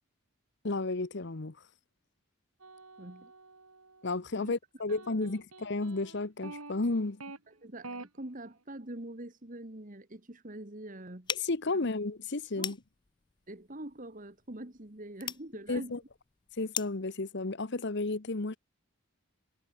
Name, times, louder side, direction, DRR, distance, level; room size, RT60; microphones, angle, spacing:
voice 1, 0.6-1.6 4.0-7.2 11.4-12.8 15.7-16.0 16.6-18.6, left 2 dB, 55° left, 1.0 m, -32 dB
sound 1, 2.6-4.2 4.9-7.4 7.8-8.1, right 3 dB, 85° right, 4.3 m, -47 dB
voice 2, 3.0-3.3 4.4-4.5 5.1-5.3 7.5-11.4 11.8-11.9 12.6-12.7 13.5-16.0, right 1 dB, 35° right, 1.8 m, -44 dB
sound 2, 11.2-17.1, left 8 dB, 20° left, 0.4 m, -42 dB
head